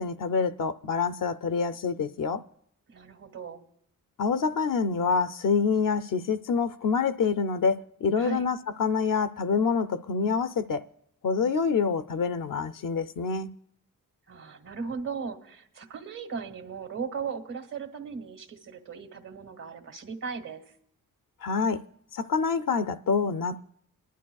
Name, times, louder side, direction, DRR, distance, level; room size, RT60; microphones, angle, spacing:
voice 1, 0.0-2.4 4.2-10.8 11.2-13.5 21.4-21.8 22.1-23.7, left 5 dB, 70° left, 0.6 m, -26 dB
voice 2, 2.9-3.6 8.2-8.4 14.3-20.6, right 5 dB, 70° right, 1.9 m, -37 dB
22.5 x 11.0 x 2.3 m
cardioid pair, 75°, 33 cm